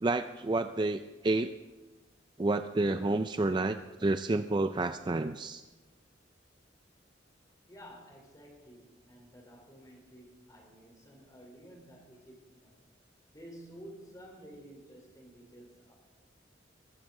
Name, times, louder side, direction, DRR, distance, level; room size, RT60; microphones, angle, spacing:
voice 1, 0.0-1.5 2.4-5.6, right 2 dB, 25° right, 9 dB, 0.4 m, -30 dB
voice 2, 7.7-12.8 13.3-15.9, equal, 20° left, 1 dB, 3.6 m, -52 dB
22.0 x 12.0 x 3.7 m, 1.2 s
head